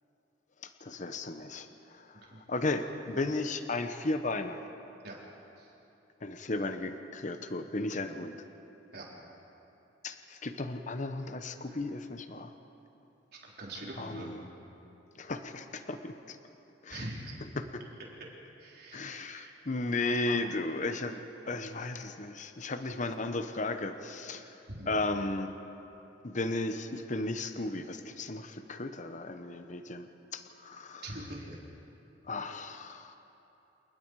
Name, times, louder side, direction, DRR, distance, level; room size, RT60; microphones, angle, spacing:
voice 1, 0.6-2.2 2.5-4.6 6.2-8.4 10.0-12.5 14.0-14.4 15.2-16.4 16.8-17.0 17.6-17.7 18.9-24.5 24.9-25.5 26.2-31.0 32.3-33.2, left 2 dB, 40° left, 8 dB, 0.9 m, -35 dB
voice 2, 13.3-14.3 16.9-17.4 18.6-19.5 24.7-25.0 31.0-31.6, right 1 dB, 60° right, -3 dB, 4.2 m, -43 dB
28.0 x 19.0 x 4.8 m, 2.9 s
head